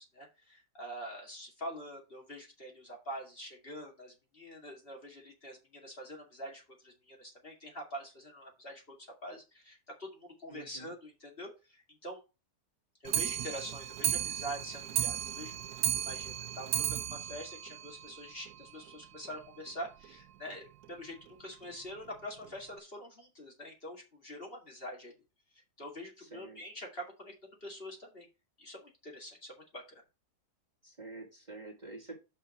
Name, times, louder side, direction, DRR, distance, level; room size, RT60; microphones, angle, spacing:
voice 1, 0.1-12.2 13.0-25.1 25.8-28.3 28.6-30.0, equal, 35° left, -1 dB, 2.5 m, -45 dB
voice 2, 10.5-10.9 26.2-26.6 30.8-32.2, right 2 dB, 30° right, -1 dB, 2.1 m, -47 dB
Clock, 13.0-18.5 18.9-19.0 19.2-19.3 19.7-19.8 20.0-20.1 20.8-20.9 21.6-21.7 22.4-22.5, right 11 dB, 80° right, 1.2 m, -34 dB
5.7 x 5.2 x 6.4 m, 0.28 s
omnidirectional pair, 1.6 m